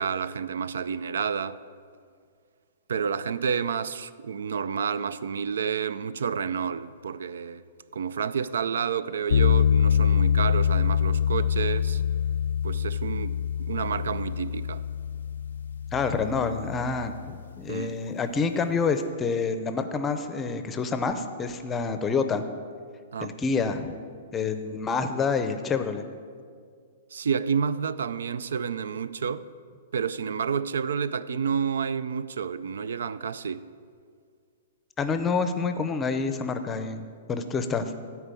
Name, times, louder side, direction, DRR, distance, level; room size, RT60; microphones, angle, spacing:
voice 1, 0.0-1.6 2.9-7.6 7.9-12.0 12.6-14.8 17.7-18.0 23.1-23.4 27.1-29.5 29.9-33.7, right 6 dB, 90° right, 0.4 m, -30 dB
sound 1, 9.3-17.5, left 8 dB, 90° left, 0.4 m, -25 dB
voice 2, 15.9-22.4 23.2-23.9 24.3-26.0 35.0-37.9, left 5 dB, 15° left, 0.6 m, -28 dB
14.0 x 4.7 x 8.3 m
hypercardioid pair, 160°, 0 cm